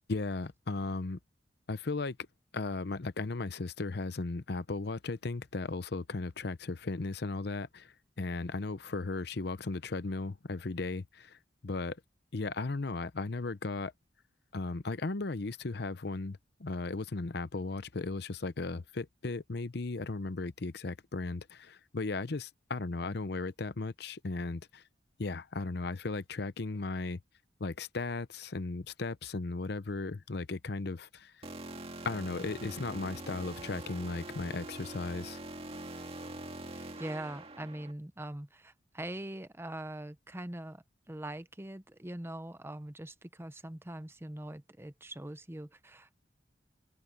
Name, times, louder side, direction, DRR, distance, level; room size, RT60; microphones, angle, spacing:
voice 1, 0.1-1.2 1.7-2.2 2.5-11.4 11.6-12.0 12.3-13.9 14.5-24.8 25.2-27.2 27.6-31.3 32.0-35.4, left 3 dB, 60° left, 0.8 m, -36 dB
sound 1, 31.4-37.9, right 2 dB, 35° right, 2.0 m, -44 dB
voice 2, 36.7-46.2, right 1 dB, 15° right, 0.8 m, -42 dB
open air
head